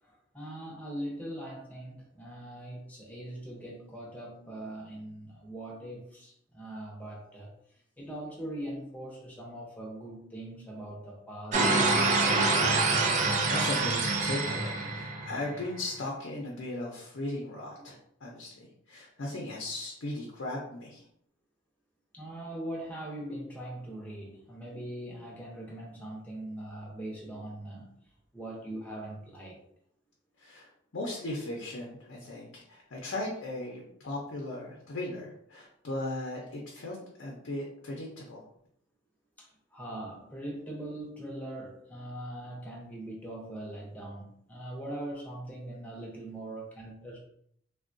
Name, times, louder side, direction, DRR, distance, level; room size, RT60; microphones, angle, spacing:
voice 1, 0.0-7.5 8.0-12.4 22.1-28.0 28.3-29.6 39.4-47.2, right 1 dB, 10° left, -3 dB, 0.6 m, -41 dB
sound 1, 11.5-15.6, right 3 dB, 35° right, 0.3 m, -26 dB
voice 2, 13.2-21.0 30.4-38.4, left 2 dB, 80° left, -2 dB, 0.6 m, -37 dB
3.5 x 2.2 x 2.5 m, 0.69 s
head